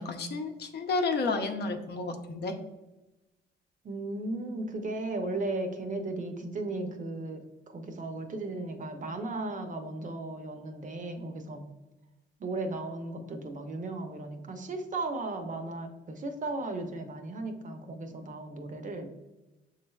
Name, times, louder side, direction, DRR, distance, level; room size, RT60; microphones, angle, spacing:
voice 1, 0.0-2.5, left 3 dB, 55° left, 5 dB, 0.6 m, -31 dB
voice 2, 3.8-7.4 7.7-11.6 12.4-19.2, right 2 dB, 40° right, 6 dB, 0.6 m, -36 dB
6.6 x 3.2 x 2.3 m, 1.0 s
cardioid pair, 90°, 20 cm